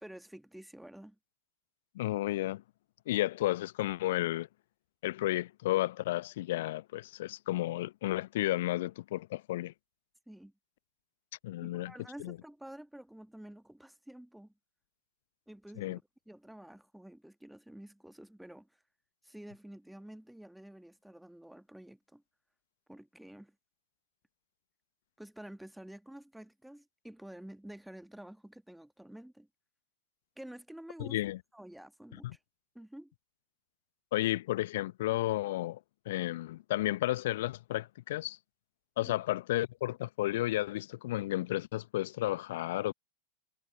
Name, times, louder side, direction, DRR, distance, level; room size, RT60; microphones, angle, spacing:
voice 1, 0.0-1.2 10.3-10.5 11.6-14.5 15.5-18.7 19.2-22.2 22.9-23.6 25.2-29.5 30.4-31.2 31.5-32.4 32.8-33.1 39.0-39.2, right 1 dB, ahead, 1.8 m, -50 dB
voice 2, 1.9-2.6 3.1-4.5 5.0-9.7 11.4-11.9 12.2-12.4 15.8-16.0 31.0-31.4 32.2-32.4 34.1-35.8 36.1-38.4 39.0-42.9, left 16 dB, 55° left, 0.9 m, -32 dB
figure-of-eight pair, 90°, 0 cm